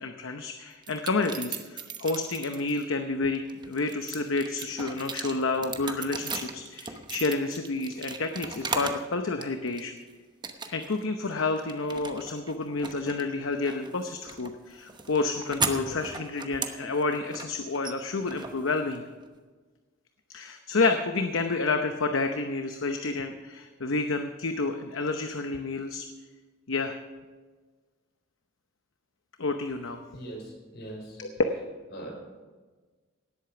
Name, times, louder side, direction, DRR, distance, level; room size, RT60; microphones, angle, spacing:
voice 1, 0.0-9.9 10.7-19.0 20.3-26.1 26.7-26.9 29.4-30.0 31.2-31.3, left 3 dB, 75° left, 6 dB, 0.8 m, -29 dB
sound 1, 0.8-2.8 3.4-9.1 9.4-10.0 10.4-11.0 11.3-19.2, right 4 dB, 25° right, 1.0 m, -37 dB
voice 2, 30.1-31.4 31.9-32.1, right 1 dB, 60° left, 0 dB, 4.9 m, -41 dB
18.0 x 8.3 x 5.9 m, 1.4 s
head